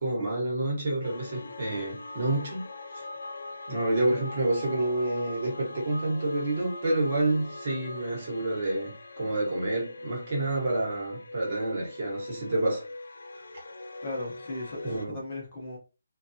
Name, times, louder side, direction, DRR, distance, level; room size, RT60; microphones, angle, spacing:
voice 1, 0.0-2.7 2.9-3.0 3.7-12.8 14.8-15.2, right 2 dB, 30° right, 1.1 m, -28 dB
sound 1, 1.0-15.1, left 2 dB, 65° left, 0.5 m, -42 dB
voice 2, 14.0-15.8, left 2 dB, 25° left, 0.7 m, -37 dB
3.3 x 2.3 x 2.6 m
hypercardioid pair, 180°, 0 cm